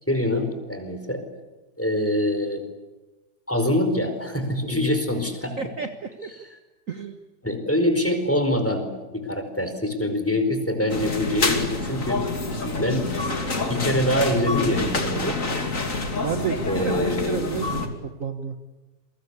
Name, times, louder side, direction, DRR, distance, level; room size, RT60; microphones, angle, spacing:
voice 1, 0.1-1.2 1.8-2.6 3.5-5.5 6.4-6.6 7.4-12.2 12.8-13.1 13.5-15.4 16.6-17.4, left 1 dB, 5° left, 7 dB, 4.7 m, -24 dB
voice 2, 5.6-6.3 6.9-7.2 16.2-18.6, right 6 dB, 45° right, 6 dB, 1.7 m, -30 dB
sound 1, 10.9-17.9, left 3 dB, 40° left, 3.0 m, -27 dB
29.0 x 23.0 x 8.3 m, 1.2 s
omnidirectional pair, 2.1 m